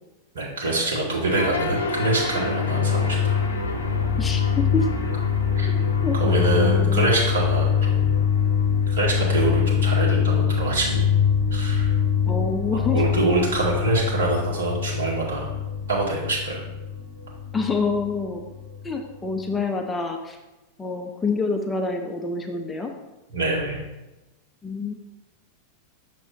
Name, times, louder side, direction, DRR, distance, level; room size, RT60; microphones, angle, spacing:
voice 1, 0.3-3.4 5.6-5.7 6.1-8.1 8.9-11.1 11.5-11.9 12.7-15.5 15.9-16.6 23.3-23.8, right 2 dB, 65° right, -3 dB, 1.7 m, -25 dB
sound 1, 1.3-19.6, left 7 dB, 70° left, 0.7 m, -24 dB
voice 2, 4.2-4.9 5.7-7.1 12.3-13.0 17.5-18.4 18.8-20.4 20.8-22.9 24.6-24.9, left 4 dB, 15° left, 4 dB, 0.5 m, -27 dB
6.2 x 5.9 x 2.7 m, 1.0 s
figure-of-eight pair, 90°, 0 cm